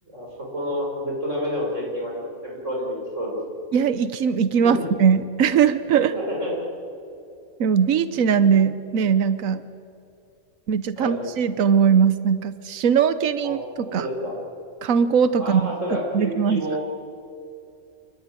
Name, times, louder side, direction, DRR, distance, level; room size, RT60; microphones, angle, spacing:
voice 1, 0.0-2.1 2.4-3.4 4.6-4.9 6.1-6.8 11.0-11.2 13.4-13.6 13.9-14.4 15.4-16.8, equal, 65° right, -2 dB, 5.8 m, -29 dB
voice 2, 3.7-6.1 7.6-9.6 10.7-13.6 13.9-14.1 14.8-15.7 16.1-16.6, right 7 dB, 85° right, 13 dB, 1.3 m, -20 dB
28.5 x 20.0 x 9.1 m, 2.6 s
omnidirectional pair, 1.4 m